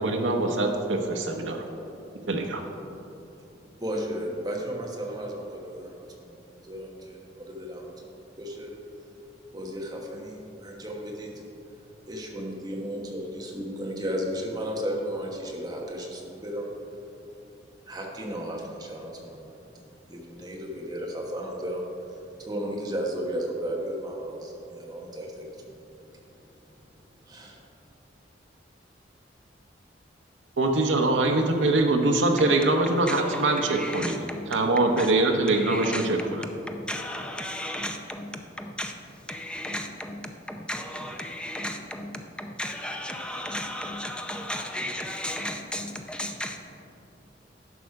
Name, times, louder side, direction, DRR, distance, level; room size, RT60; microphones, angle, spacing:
voice 1, 0.0-1.6 2.3-2.6 30.6-34.2 34.5-36.4, right 2 dB, 85° right, 0.8 m, -23 dB
voice 2, 3.8-8.7 9.5-11.4 12.1-16.7 17.8-25.7 27.3-27.6, equal, 20° right, 1.1 m, -34 dB
voice 3, 32.4-35.1 35.5-39.0 39.3-46.6, left 1 dB, 5° left, 0.5 m, -35 dB
11.0 x 6.3 x 4.7 m
head